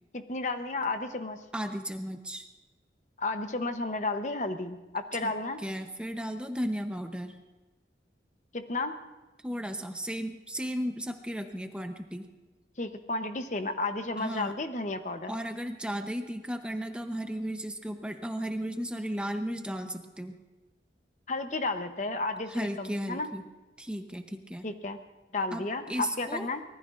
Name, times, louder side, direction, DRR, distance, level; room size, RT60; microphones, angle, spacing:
voice 1, 0.1-1.4 3.2-5.6 8.5-8.9 12.8-15.3 21.3-23.3 24.6-25.0 25.3-26.6, left 2 dB, 40° left, 7 dB, 0.9 m, -32 dB
voice 2, 1.5-2.5 5.2-5.3 5.6-7.4 9.4-12.3 14.2-14.5 15.3-20.3 22.5-23.4 23.8-24.7 25.5-26.5, equal, 5° right, 6 dB, 0.8 m, -35 dB
24.5 x 19.0 x 2.5 m, 1.2 s
head